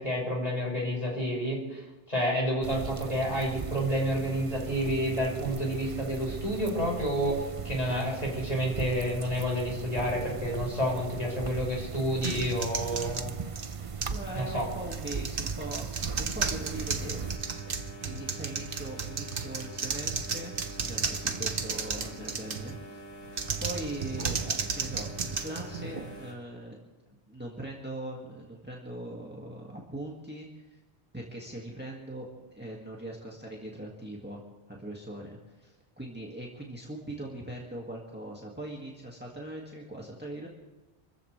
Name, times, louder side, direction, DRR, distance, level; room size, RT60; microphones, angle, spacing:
voice 1, 0.0-13.3 14.3-14.7, equal, 35° left, -3 dB, 6.4 m, -30 dB
sound 1, 2.6-17.4, right 5 dB, 35° right, 0.7 m, -38 dB
sound 2, 12.2-14.3 14.8-22.8 23.3-26.2, right 5 dB, 55° right, 1.2 m, -34 dB
voice 2, 14.1-17.2 18.0-23.0 23.6-26.8 27.3-30.8 31.1-34.4 34.7-40.5, right 1 dB, 10° right, -2 dB, 2.0 m, -41 dB
sound 3, 16.4-26.3, right 1 dB, 70° left, 4.6 m, -46 dB
27.5 x 14.5 x 3.4 m, 1.1 s
omnidirectional pair, 1.1 m